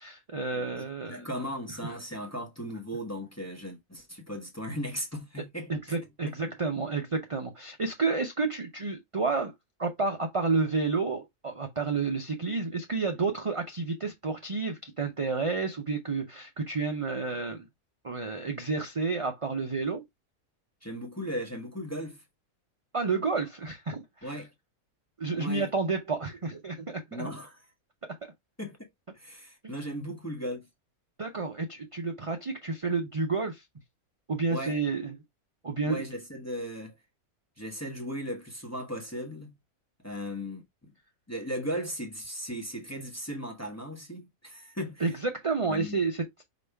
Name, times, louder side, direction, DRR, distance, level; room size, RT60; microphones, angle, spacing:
voice 1, 0.0-1.3 5.7-9.5 9.8-17.6 18.0-20.0 22.9-24.4 25.2-27.3 29.6-29.8 31.2-33.6 34.3-35.2 35.6-36.0 45.0-46.4, right 4 dB, 35° right, 0.5 m, -30 dB
voice 2, 0.5-6.0 6.2-6.3 20.8-22.2 24.2-24.5 25.3-25.7 27.1-27.6 28.6-28.9 29.1-30.7 34.5-34.8 35.9-36.9 37.6-39.5 40.0-40.9 41.3-45.1 45.7-46.0, equal, 10° left, 0.9 m, -37 dB
5.2 x 2.9 x 3.3 m
omnidirectional pair, 1.5 m